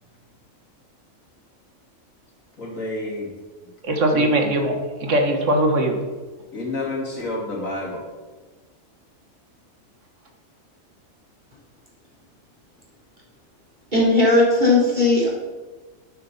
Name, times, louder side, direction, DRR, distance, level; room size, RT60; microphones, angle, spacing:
voice 1, 2.6-3.3 4.1-4.3 6.5-8.0, left 2 dB, 75° left, -2 dB, 3.1 m, -29 dB
voice 2, 3.8-6.0, right 1 dB, 60° right, 4 dB, 1.9 m, -20 dB
voice 3, 13.9-15.3, left 2 dB, 35° right, -5 dB, 4.0 m, -17 dB
12.0 x 9.2 x 4.2 m, 1.3 s
omnidirectional pair, 1.4 m